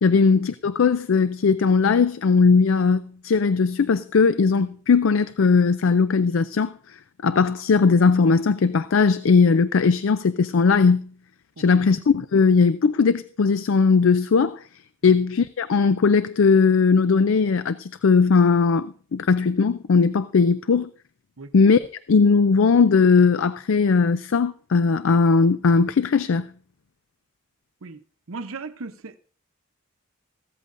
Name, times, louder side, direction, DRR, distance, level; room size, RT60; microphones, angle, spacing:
voice 1, 0.0-6.7 7.2-11.1 11.6-14.6 15.0-20.9 21.5-26.5, left 5 dB, 70° left, 0.4 m, -19 dB
voice 2, 11.6-11.9 15.0-15.2 21.4-21.5 27.8-29.2, right 3 dB, 80° right, 0.8 m, -38 dB
15.5 x 13.5 x 2.5 m
head